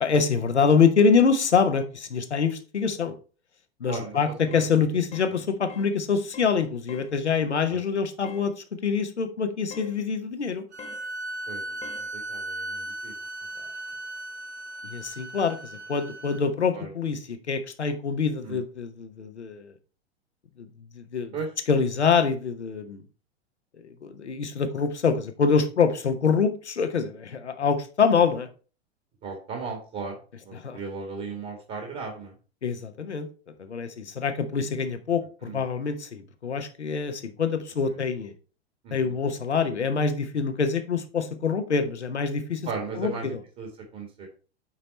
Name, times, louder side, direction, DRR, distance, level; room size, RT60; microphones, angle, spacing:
voice 1, 0.0-3.2 3.8-10.6 14.8-19.7 20.6-20.7 20.9-21.3 21.7-23.0 23.8-28.5 30.5-30.8 32.6-33.3 33.6-38.3 38.9-42.6 43.0-43.1, left 5 dB, 85° left, 8 dB, 1.0 m, -25 dB
voice 2, 3.8-4.7 5.3-5.4 7.7-7.8 11.5-13.1 16.7-16.9 18.4-18.6 21.3-21.5 29.2-32.3 35.4-35.6 38.8-39.2 42.7-44.3, right 4 dB, 35° right, 2 dB, 2.0 m, -37 dB
sound 1, 4.5-4.7 5.1-5.4 5.7-5.9 6.3-6.6 6.9-7.1 8.2-8.5 9.7-10.0 10.8-11.0 11.8-12.1, left 6 dB, 20° left, 0.8 m, -44 dB
sound 2, 10.7-16.4, right 2 dB, 80° right, 1.0 m, -37 dB
8.7 x 4.3 x 4.1 m, 0.37 s
figure-of-eight pair, 95°, 33 cm